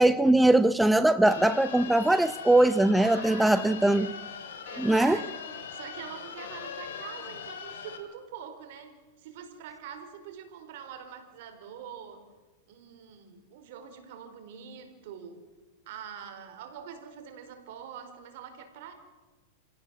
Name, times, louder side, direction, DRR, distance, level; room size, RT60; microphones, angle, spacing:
voice 1, 0.0-4.1 4.8-5.2, right 1 dB, 5° right, 13 dB, 0.6 m, -21 dB
sound 1, 1.2-8.0, left 7 dB, 75° left, 3.5 m, -40 dB
voice 2, 3.0-3.5 3.9-4.1 4.6-5.3 5.7-12.2 12.7-15.4 15.9-18.9, right 8 dB, 60° right, 7 dB, 4.6 m, -44 dB
27.0 x 17.0 x 7.6 m, 1.2 s
hypercardioid pair, 135°, 0 cm